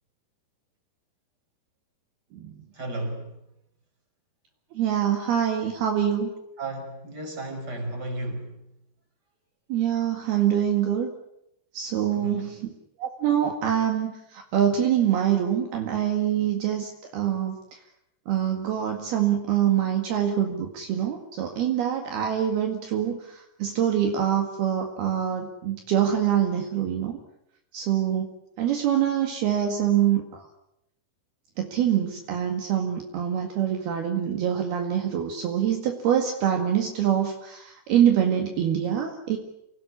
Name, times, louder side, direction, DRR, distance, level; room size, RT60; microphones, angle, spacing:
voice 1, 2.7-3.3 6.6-8.6 12.1-12.5, right 2 dB, 20° right, 4 dB, 5.9 m, -33 dB
voice 2, 4.8-6.3 9.7-11.1 11.7-12.7 13.0-17.6 18.3-27.2 27.7-28.3 28.6-30.4 31.6-39.4, right 9 dB, 65° right, 4 dB, 3.8 m, -25 dB
28.0 x 19.0 x 9.8 m, 0.82 s
omnidirectional pair, 4.9 m